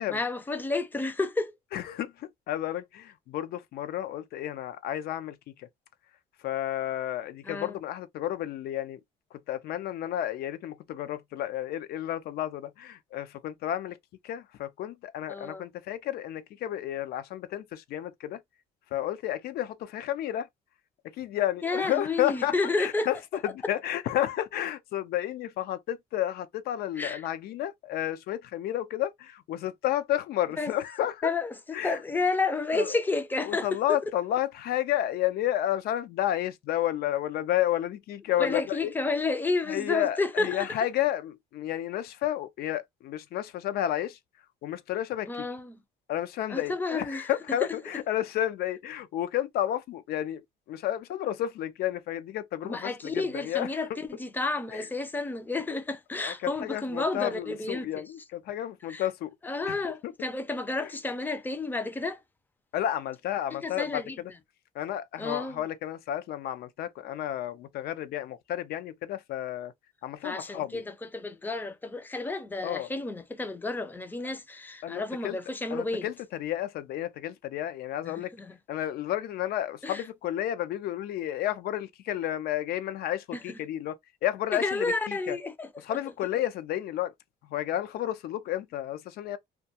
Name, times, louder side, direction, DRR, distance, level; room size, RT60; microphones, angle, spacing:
voice 1, 0.1-1.5 7.4-7.8 15.3-15.7 21.6-23.1 27.0-27.3 30.6-30.7 31.2-34.0 38.4-40.9 45.3-45.8 46.5-47.3 47.6-47.7 52.6-57.9 58.9-59.1 59.4-62.2 63.5-64.2 65.2-65.6 70.2-76.1 78.0-78.6 79.8-80.0 83.3-83.6 84.5-86.0, left 3 dB, 10° left, 0.4 m, -31 dB
voice 2, 1.7-5.7 6.4-9.0 9.3-14.0 14.2-18.4 18.9-20.5 21.1-23.2 23.4-31.3 31.7-32.0 32.7-33.0 33.4-38.9 39.7-44.2 44.6-45.5 46.1-53.9 54.7-54.9 56.2-59.4 59.6-60.1 60.8-60.9 62.7-64.0 64.7-69.7 70.0-70.8 72.6-72.9 74.8-75.4 75.7-78.3 78.7-83.9 84.2-85.4 85.8-87.1 87.5-89.4, left 12 dB, 65° left, 0.4 m, -31 dB
2.2 x 2.2 x 2.7 m
cardioid pair, 110°, 17 cm